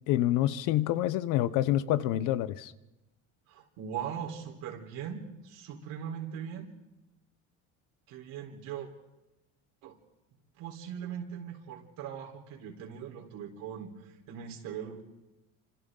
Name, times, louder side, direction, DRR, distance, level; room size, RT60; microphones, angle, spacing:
voice 1, 0.1-2.7, left 13 dB, 65° left, 1.0 m, -27 dB
voice 2, 3.5-6.7 8.1-8.9 9.8-10.0 10.6-15.0, right 8 dB, 70° right, 4.4 m, -40 dB
29.5 x 26.5 x 4.0 m
cardioid pair, 140°, 34 cm